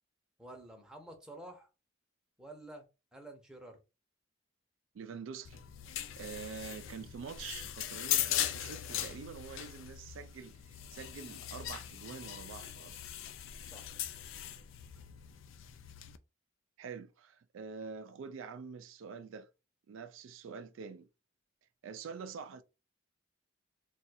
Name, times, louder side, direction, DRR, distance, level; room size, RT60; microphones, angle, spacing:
voice 1, 0.4-1.7 2.4-3.8 13.6-13.9, right 1 dB, 5° right, 0.7 m, -50 dB
voice 2, 4.9-5.6 6.2-13.0 16.8-19.5 19.9-21.1 21.8-22.6, right 6 dB, 75° right, 0.3 m, -46 dB
sound 1, 5.4-16.2, left 11 dB, 75° left, 0.4 m, -39 dB
2.5 x 2.4 x 4.1 m
head